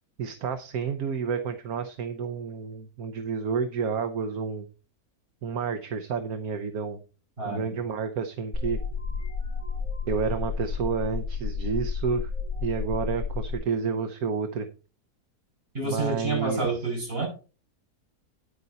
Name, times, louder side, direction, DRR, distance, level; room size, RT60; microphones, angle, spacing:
voice 1, 0.2-4.6 5.4-7.0 7.4-8.8 10.1-12.3 12.6-14.7 15.8-16.6, right 6 dB, 70° right, 7 dB, 1.4 m, -30 dB
voice 2, 7.4-7.8 15.7-17.3, right 3 dB, 40° right, -1 dB, 5.4 m, -29 dB
sound 1, 8.5-13.5, left 5 dB, 20° left, 3.4 m, -31 dB
9.8 x 8.9 x 4.1 m, 0.34 s
omnidirectional pair, 1.6 m